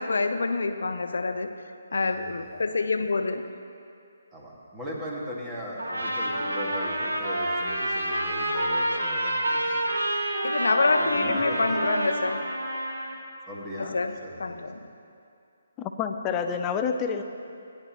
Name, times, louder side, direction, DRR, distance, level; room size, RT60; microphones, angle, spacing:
voice 1, 0.0-1.5 1.9-3.4 10.4-12.4 13.8-14.1 14.4-14.8, left 3 dB, 75° left, 8 dB, 0.7 m, -26 dB
voice 2, 1.9-2.4 4.3-10.0 11.0-11.9 13.5-14.6, equal, 15° right, -5 dB, 1.9 m, -38 dB
Trumpet, 5.8-13.2, right 1 dB, 90° right, 1.9 m, -28 dB
voice 3, 15.8-17.2, left 6 dB, 20° left, 6 dB, 0.5 m, -28 dB
17.0 x 10.0 x 3.0 m, 2.5 s
figure-of-eight pair, 150°, 0 cm